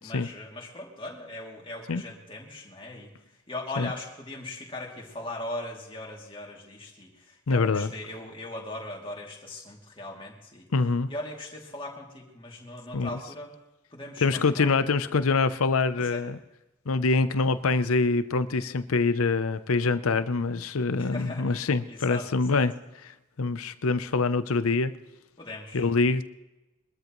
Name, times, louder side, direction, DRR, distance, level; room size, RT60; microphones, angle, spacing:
voice 1, 0.0-3.1 3.5-10.7 11.1-13.5 13.9-14.7 16.0-16.2 21.0-21.6 21.9-22.6 25.4-25.9, left 2 dB, 25° left, -1 dB, 2.6 m, -39 dB
voice 2, 7.5-7.9 10.7-11.1 12.9-13.2 14.2-16.4 16.9-22.7 23.1-24.9 25.7-26.2, left 4 dB, 80° left, 13 dB, 0.6 m, -25 dB
23.0 x 13.0 x 3.1 m, 0.98 s
head